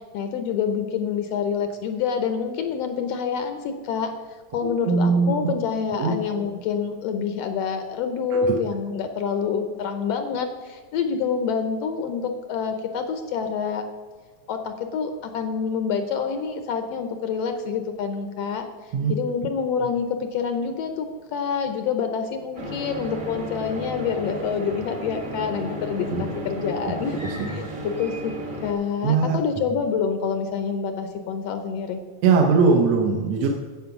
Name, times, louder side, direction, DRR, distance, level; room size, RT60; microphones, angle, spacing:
voice 1, 0.0-4.1 4.5-13.9 14.5-18.7 19.1-21.1 21.3-27.2 27.5-28.3 28.6-32.0, left 6 dB, 70° left, 7 dB, 1.6 m, -27 dB
voice 2, 4.6-5.3 6.0-6.4 8.4-8.6 18.9-19.1 26.1-26.2 27.2-27.8 29.0-29.4 32.2-33.5, right 5 dB, 70° right, 0 dB, 1.9 m, -21 dB
sound 1, 22.5-28.7, right 1 dB, 40° right, 0.7 m, -34 dB
9.5 x 8.1 x 5.8 m, 1.5 s
omnidirectional pair, 3.3 m